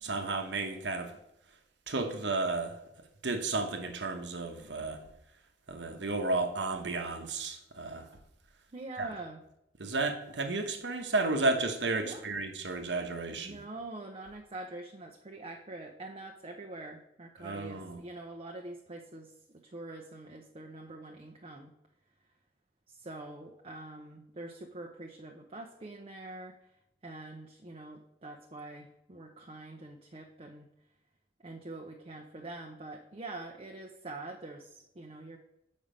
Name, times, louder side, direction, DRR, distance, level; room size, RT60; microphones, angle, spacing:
voice 1, 0.0-1.1 1.9-2.8 3.2-5.0 5.7-8.1 9.0-9.1 9.8-13.6 17.4-18.0, right 3 dB, 90° right, 5 dB, 1.1 m, -32 dB
voice 2, 8.7-9.4 12.0-12.2 13.3-21.7 22.9-26.7 27.0-30.7 31.4-35.4, right 2 dB, 35° right, 2 dB, 0.6 m, -45 dB
7.3 x 5.4 x 5.1 m, 0.83 s
head